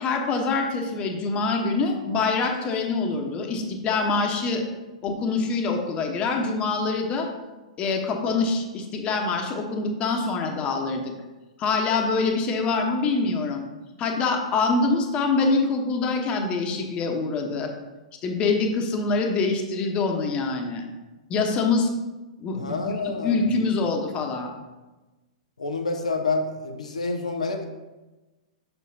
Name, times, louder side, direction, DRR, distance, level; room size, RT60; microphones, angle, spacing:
voice 1, 0.0-4.6 5.0-7.3 7.8-11.0 11.6-13.6 14.0-17.7 18.2-20.9 21.3-21.9 22.4-22.9 23.2-24.5, left 3 dB, 30° left, 3 dB, 1.1 m, -25 dB
voice 2, 22.6-23.5 25.6-27.7, left 3 dB, 90° left, 3 dB, 0.7 m, -28 dB
6.7 x 6.6 x 2.8 m, 1.1 s
hypercardioid pair, 110°, 4 cm